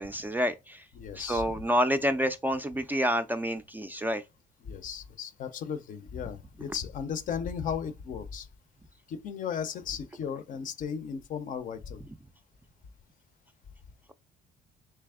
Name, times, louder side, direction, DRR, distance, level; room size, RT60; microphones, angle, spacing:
voice 1, 0.0-0.9 1.2-4.2, equal, 10° right, 0.3 m, -28 dB
voice 2, 1.0-1.5 4.6-8.5 9.1-12.0, left 7 dB, 50° left, 0.5 m, -35 dB
3.3 x 3.0 x 3.5 m
cardioid pair, 110°, 17 cm